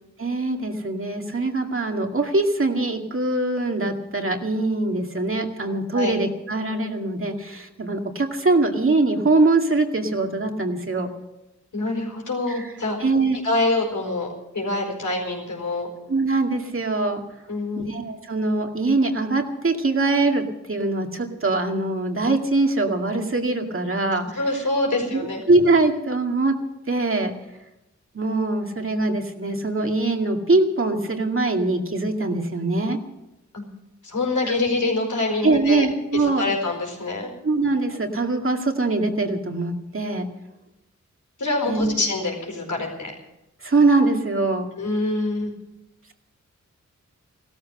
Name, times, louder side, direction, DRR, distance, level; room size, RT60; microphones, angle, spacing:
voice 1, 0.2-11.1 12.5-12.7 13.0-13.4 16.1-17.2 17.8-20.4 20.7-24.3 25.1-25.2 25.5-26.5 26.9-27.3 28.1-33.0 34.4-34.6 35.4-36.5 37.4-40.3 41.7-42.0 43.6-44.7, right 2 dB, 45° right, 3 dB, 2.2 m, -22 dB
voice 2, 11.7-13.0 13.4-14.3 14.5-15.9 17.5-17.9 24.3-25.4 33.5-33.7 34.0-35.8 36.1-37.3 41.4-43.1 44.8-45.5, left 2 dB, 85° left, 1 dB, 4.7 m, -25 dB
16.5 x 13.5 x 6.6 m, 0.93 s
wide cardioid pair, 60°, 30 cm